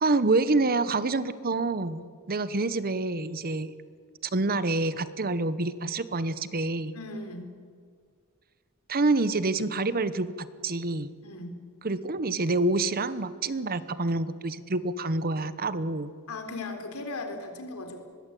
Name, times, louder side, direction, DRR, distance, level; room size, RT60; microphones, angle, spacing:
voice 1, 0.0-3.7 4.3-6.9 8.9-11.1 11.8-16.1, right 2 dB, 45° right, 14 dB, 1.0 m, -27 dB
voice 2, 6.9-7.5 11.2-11.6 16.3-18.0, left 2 dB, 75° left, 6 dB, 3.8 m, -37 dB
24.0 x 21.0 x 8.4 m, 2.1 s
head